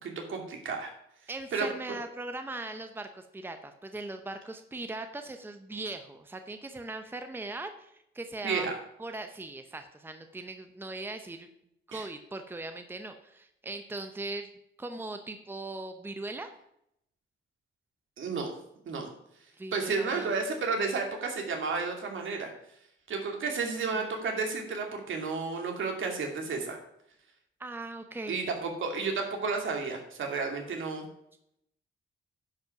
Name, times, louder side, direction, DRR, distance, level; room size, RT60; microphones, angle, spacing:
voice 1, 0.0-0.9 1.5-2.0 8.4-8.7 11.9-12.1 18.2-18.5 18.9-19.1 19.7-22.5 23.1-26.8 28.3-31.0, right 4 dB, 70° right, 2 dB, 2.4 m, -32 dB
voice 2, 1.3-8.7 9.0-11.5 11.9-14.5 14.8-16.5 19.6-20.3 23.9-24.2 27.6-28.4, right 2 dB, 10° right, 7 dB, 0.8 m, -39 dB
10.5 x 5.6 x 5.9 m, 0.75 s
wide cardioid pair, 125°, 21 cm